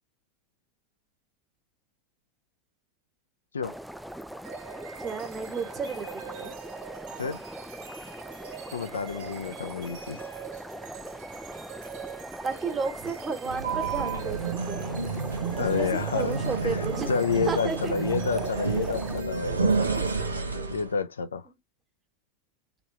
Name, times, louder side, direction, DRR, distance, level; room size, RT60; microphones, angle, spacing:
sound 1, 3.6-19.2, right 1 dB, ahead, 0.4 m, -41 dB
sound 2, 4.4-21.1, right 8 dB, 55° right, 1.0 m, -44 dB
voice 1, 5.0-6.5 12.4-15.0 15.6-17.1 17.4-17.9 18.4-18.9, right 5 dB, 25° right, 1.4 m, -33 dB
voice 2, 8.7-10.2 15.6-19.6 20.7-21.4, left 6 dB, 80° left, 0.4 m, -29 dB
sound 3, 13.4-20.9, right 4 dB, 85° right, 0.8 m, -30 dB
3.3 x 3.0 x 3.0 m
figure-of-eight pair, 85°, 0 cm